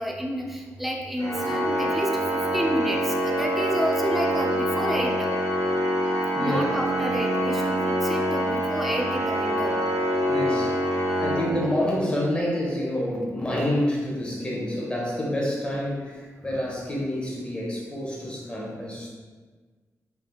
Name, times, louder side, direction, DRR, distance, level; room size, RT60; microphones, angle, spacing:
voice 1, 0.0-5.3 6.4-9.7, equal, ahead, -1 dB, 0.5 m, -30 dB
Organ, 1.2-12.1, equal, 75° right, 1.1 m, -26 dB
voice 2, 6.0-6.6 10.3-19.1, left 1 dB, 15° left, -5 dB, 1.0 m, -28 dB
3.4 x 2.6 x 2.2 m, 1.4 s
cardioid pair, 65°, 6 cm